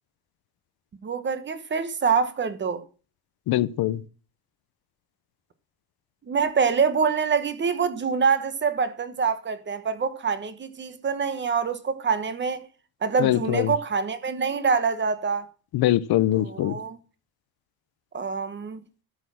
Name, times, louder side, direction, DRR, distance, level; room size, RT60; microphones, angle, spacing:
voice 1, 1.0-2.8 6.3-12.6 13.0-15.4 16.3-17.0 18.1-18.8, right 5 dB, 30° right, 1.1 m, -25 dB
voice 2, 3.5-4.0 13.2-13.7 15.7-16.8, left 14 dB, 75° left, 0.8 m, -22 dB
12.5 x 6.5 x 6.2 m
cardioid pair, 165°, 38 cm